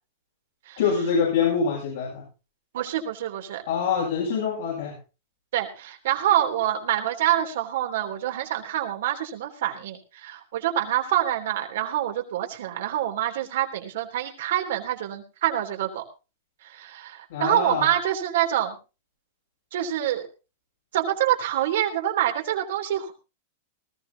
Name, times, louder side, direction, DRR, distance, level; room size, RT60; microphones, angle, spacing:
voice 1, 0.8-2.2 3.7-5.0 17.3-17.9, left 6 dB, 75° left, -4 dB, 7.1 m, -25 dB
voice 2, 2.7-3.6 5.5-16.0 16.6-18.8 19.7-20.3 20.9-23.1, right 12 dB, 75° right, 4 dB, 3.3 m, -26 dB
19.5 x 14.5 x 2.9 m, 0.31 s
hypercardioid pair, 130°, 0 cm